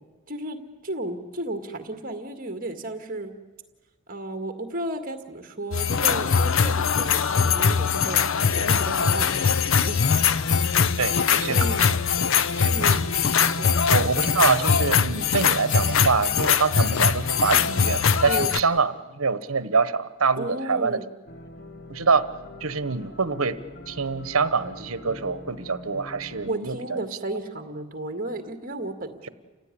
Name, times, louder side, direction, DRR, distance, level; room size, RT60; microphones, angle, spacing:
voice 1, 0.3-0.6 0.8-3.3 4.1-10.0 11.5-11.9 12.7-13.0 13.6-13.9 18.3-18.5 20.4-21.1 26.5-29.3, right 1 dB, 40° right, 7 dB, 2.0 m, -33 dB
sound 1, 5.7-18.6, left 6 dB, 70° left, 0.7 m, -22 dB
voice 2, 11.0-12.0 12.5-13.1 13.5-13.6 13.9-21.0 21.9-22.3 22.6-23.6 23.9-27.0, right 4 dB, 80° right, 14 dB, 1.1 m, -25 dB
sound 2, 21.3-26.5, left 2 dB, 45° left, 0.9 m, -43 dB
29.5 x 16.0 x 9.9 m, 1.3 s
head